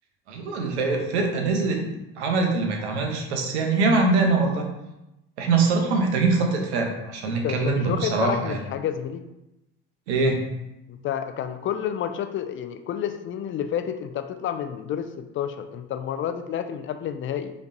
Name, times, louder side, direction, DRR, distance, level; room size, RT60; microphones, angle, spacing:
voice 1, 0.3-1.9 2.2-4.7 5.4-8.6 10.1-10.5, right 3 dB, 80° right, 2 dB, 0.9 m, -23 dB
voice 2, 7.3-9.2 10.9-17.5, left 9 dB, 40° left, 9 dB, 0.5 m, -30 dB
5.0 x 3.2 x 2.7 m, 0.92 s
hypercardioid pair, 70°, 33 cm